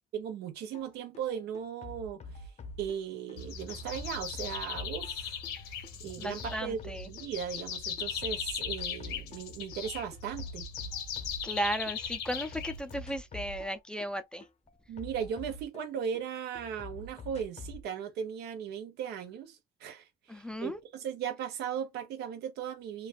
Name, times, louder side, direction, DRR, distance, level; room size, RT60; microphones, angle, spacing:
voice 1, 0.1-2.5 2.8-5.4 6.0-10.7 14.9-23.1, right 8 dB, 75° right, 0.9 m, -37 dB
sound 1, 0.7-0.9 1.1-3.4 3.7-7.7 8.0-9.5 9.7-12.0 12.3-16.2 16.6-17.8, left 2 dB, 40° left, 0.7 m, -46 dB
sound 2, 3.4-13.2, left 7 dB, 85° left, 1.4 m, -39 dB
voice 2, 6.2-7.0 11.4-14.4 20.3-20.8, equal, 5° left, 0.4 m, -35 dB
3.2 x 2.4 x 2.5 m
cardioid pair, 110°, 17 cm